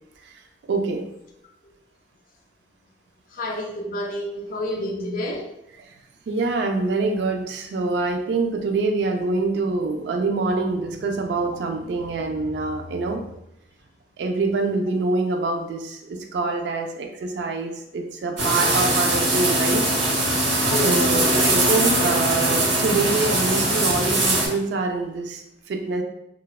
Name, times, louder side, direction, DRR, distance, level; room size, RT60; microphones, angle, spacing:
voice 1, 0.7-1.1 6.3-13.3 14.2-19.9 20.8-26.0, right 3 dB, 65° right, 3 dB, 0.3 m, -25 dB
voice 2, 3.3-5.5 20.7-21.3, left 1 dB, 45° left, 0 dB, 0.4 m, -29 dB
sound 1, 18.4-24.5, right 1 dB, 85° right, 0.7 m, -21 dB
2.7 x 2.2 x 2.2 m, 0.81 s
head